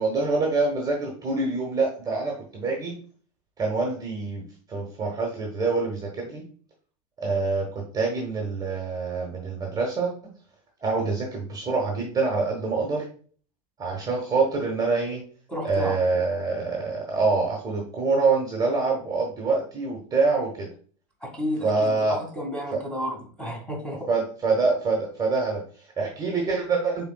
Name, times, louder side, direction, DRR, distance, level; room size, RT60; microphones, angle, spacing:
voice 1, 0.0-3.0 3.6-6.4 7.2-10.1 10.8-13.0 13.8-15.2 15.6-20.7 21.6-22.2 24.1-27.1, right 3 dB, 20° right, 0 dB, 1.3 m, -25 dB
voice 2, 15.5-16.0 21.2-24.1, equal, 5° left, -1 dB, 1.9 m, -32 dB
5.7 x 3.7 x 2.3 m, 0.43 s
hypercardioid pair, 95°, 20 cm